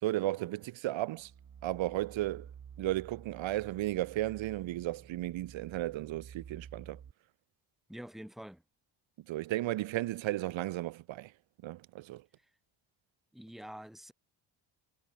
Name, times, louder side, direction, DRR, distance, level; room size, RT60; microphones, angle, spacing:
voice 1, 0.0-1.3 1.6-2.5 2.8-7.0 9.3-11.3 11.6-12.2, right 16 dB, 85° right, 1.6 m, -34 dB
sound 1, 1.2-7.1, right 8 dB, 45° right, 5.1 m, -51 dB
voice 2, 7.9-8.6 13.3-14.1, equal, ahead, 1.7 m, -46 dB
cardioid pair, 110°, 45 cm